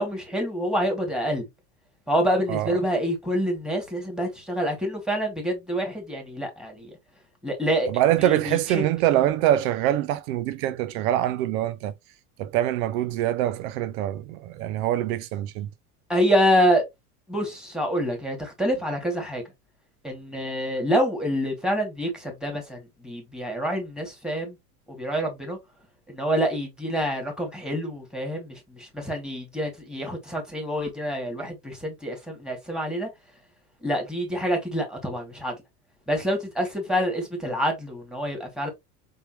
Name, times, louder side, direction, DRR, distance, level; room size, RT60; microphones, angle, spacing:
voice 1, 0.0-1.5 2.1-6.9 7.4-7.9 8.2-8.8 16.1-16.8 17.3-19.4 20.0-24.6 24.9-25.6 26.1-33.1 33.8-35.5 36.1-38.7, equal, ahead, 2.4 m, -27 dB
voice 2, 7.9-11.9 12.4-15.7, right 13 dB, 70° right, 0.6 m, -24 dB
4.4 x 3.7 x 3.0 m
hypercardioid pair, 85°, 45 cm